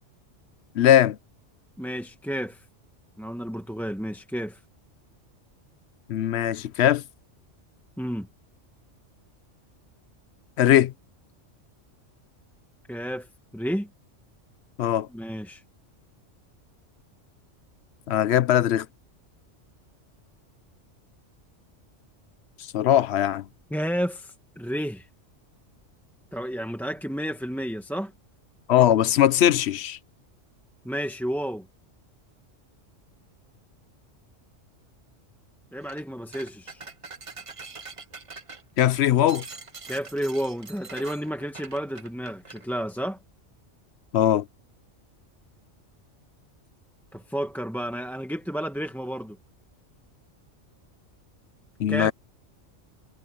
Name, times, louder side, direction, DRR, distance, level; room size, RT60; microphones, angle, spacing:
voice 1, 0.8-1.2 6.1-7.0 10.6-10.9 14.8-15.1 18.1-18.9 22.7-23.4 28.7-30.0 38.8-39.4 44.1-44.4 51.8-52.1, left 11 dB, 65° left, 0.8 m, -20 dB
voice 2, 1.8-2.6 3.2-4.6 8.0-8.3 12.9-13.3 13.5-13.9 15.1-15.6 23.7-25.1 26.3-28.1 30.8-31.7 35.7-36.8 39.9-43.2 47.1-49.4 51.9-52.1, equal, ahead, 1.1 m, -31 dB
sound 1, 35.8-36.0 36.3-42.6, right 4 dB, 30° right, 0.9 m, -43 dB
omnidirectional pair, 1.3 m